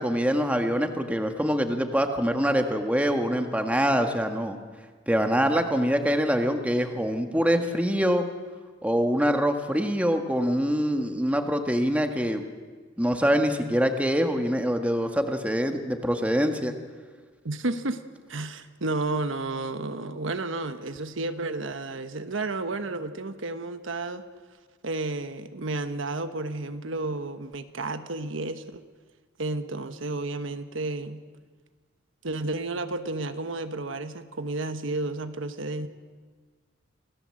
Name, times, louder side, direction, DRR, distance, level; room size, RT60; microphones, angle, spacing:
voice 1, 0.0-4.6 5.1-8.2 8.8-12.4 13.0-16.7, equal, 5° right, 5 dB, 1.6 m, -24 dB
voice 2, 17.4-18.0 18.3-24.2 24.8-28.8 29.4-31.2 32.2-35.9, right 2 dB, 75° right, 9 dB, 1.2 m, -32 dB
27.5 x 17.0 x 7.7 m, 1.5 s
head